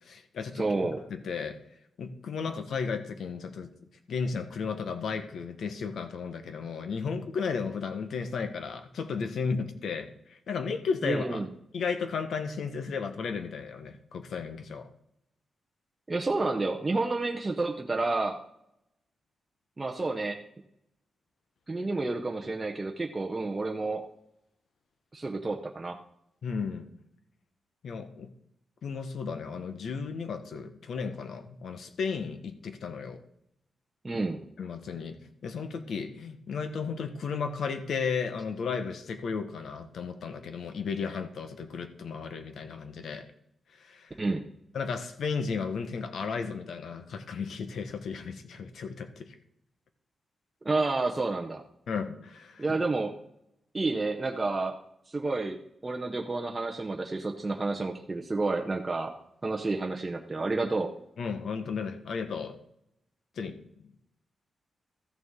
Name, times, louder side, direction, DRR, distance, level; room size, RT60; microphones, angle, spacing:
voice 1, 0.0-0.7 1.1-1.6 2.0-3.7 4.1-11.4 11.7-14.9 26.4-26.9 27.8-28.3 28.8-33.2 34.6-43.3 43.7-44.2 44.7-49.3 51.9-52.8 61.2-62.6 63.4-63.6, left 5 dB, 65° left, 8 dB, 1.1 m, -34 dB
voice 2, 0.6-1.0 11.0-11.5 16.1-18.4 19.8-20.4 21.7-24.0 25.1-26.0 34.0-34.4 44.2-44.4 50.6-51.6 52.6-53.1 53.7-54.7 55.1-59.1 59.4-60.9, right 3 dB, 20° right, 1 dB, 0.7 m, -30 dB
14.0 x 6.7 x 3.7 m, 0.78 s
wide cardioid pair, 160°, 0 cm